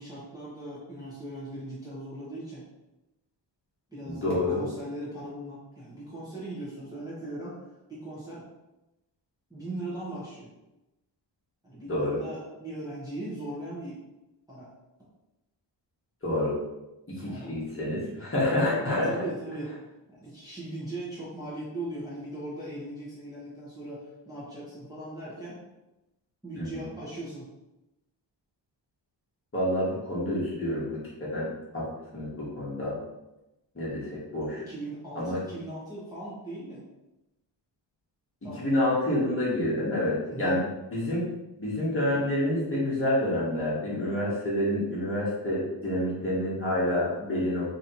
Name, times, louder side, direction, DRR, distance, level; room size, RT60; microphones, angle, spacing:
voice 1, 0.0-2.6 3.9-7.6 7.9-8.4 9.5-10.5 11.6-14.0 14.5-14.7 17.2-17.6 19.0-19.8 20.1-25.6 26.4-27.5 34.7-36.8 38.4-38.7 40.3-40.6, right 1 dB, 10° right, -10 dB, 1.0 m, -39 dB
voice 2, 4.0-4.7 11.8-12.2 16.2-16.5 17.2-19.2 26.5-26.8 29.5-31.9 32.1-33.0 33.7-34.6 35.1-35.4 38.6-40.6 40.9-41.3 41.6-47.7, left 1 dB, 30° left, -7 dB, 1.3 m, -28 dB
3.1 x 2.8 x 4.0 m, 0.97 s
wide cardioid pair, 180°, 46 cm